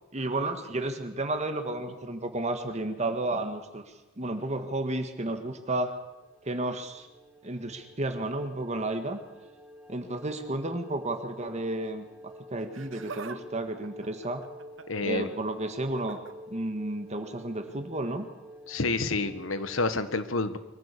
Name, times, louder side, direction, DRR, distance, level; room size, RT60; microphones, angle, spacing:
voice 1, 0.1-3.8 4.2-5.9 6.4-7.1 7.4-9.2 9.9-14.4 15.0-16.2 16.5-18.3, right 2 dB, 35° right, 6 dB, 1.7 m, -32 dB
sound 1, 6.1-20.0, equal, 5° right, 2.1 m, -49 dB
Laughter, 12.6-13.4 13.7-15.0 15.9-16.3 17.6-17.8 18.7-18.8, right 5 dB, 70° right, 1.4 m, -44 dB
voice 2, 14.9-15.3 18.7-20.6, left 3 dB, 80° left, 11 dB, 1.5 m, -29 dB
24.0 x 15.5 x 8.4 m, 1.1 s
head